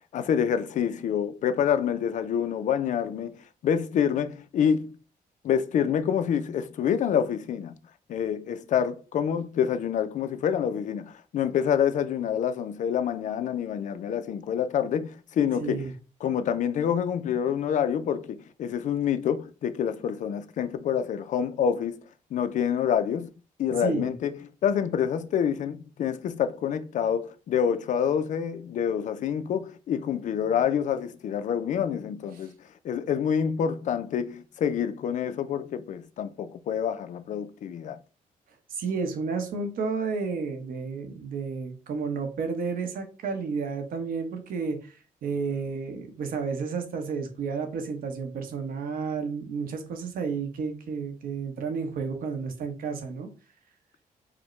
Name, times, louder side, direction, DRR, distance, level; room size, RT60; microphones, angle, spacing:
voice 1, 0.1-3.4 3.6-4.9 5.4-7.7 8.1-15.9 16.2-22.0 22.3-23.3 23.6-24.3 24.6-32.5 32.8-38.0, left 8 dB, 60° left, 0.4 m, -27 dB
voice 2, 15.6-15.9 23.7-24.1 38.7-53.3, right 5 dB, 75° right, 0.9 m, -31 dB
4.9 x 2.1 x 3.1 m
cardioid pair, 130°, 15 cm